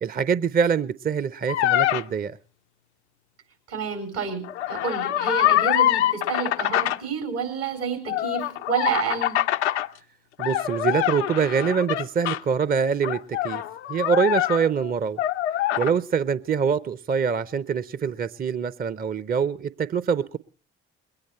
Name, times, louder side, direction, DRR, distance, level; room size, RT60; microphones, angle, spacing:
voice 1, 0.0-2.4 10.4-13.6 13.9-15.2 15.8-20.4, right 6 dB, 25° right, 0.6 m, -24 dB
sound 1, 1.5-2.0 4.4-7.0 8.1-9.9 10.4-12.4 13.0-14.9 15.2-15.9, left 13 dB, 80° left, 0.5 m, -24 dB
voice 2, 3.7-9.4, right 6 dB, 80° right, 4.4 m, -29 dB
22.0 x 9.7 x 4.3 m
figure-of-eight pair, 45°, 34 cm